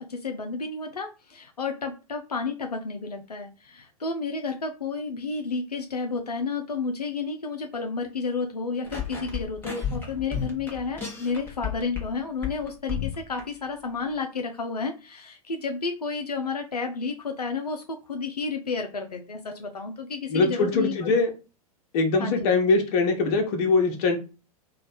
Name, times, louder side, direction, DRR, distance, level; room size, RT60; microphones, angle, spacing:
voice 1, 0.0-21.1 22.2-22.5, left 4 dB, 90° left, 4 dB, 0.4 m, -31 dB
sound 1, 8.9-12.1 12.4-13.4, left 7 dB, 10° left, 0.9 m, -32 dB
voice 2, 20.3-21.3 21.9-24.2, left 3 dB, 45° left, 4 dB, 1.0 m, -22 dB
3.2 x 2.3 x 4.0 m, 0.33 s
figure-of-eight pair, 100°, 20 cm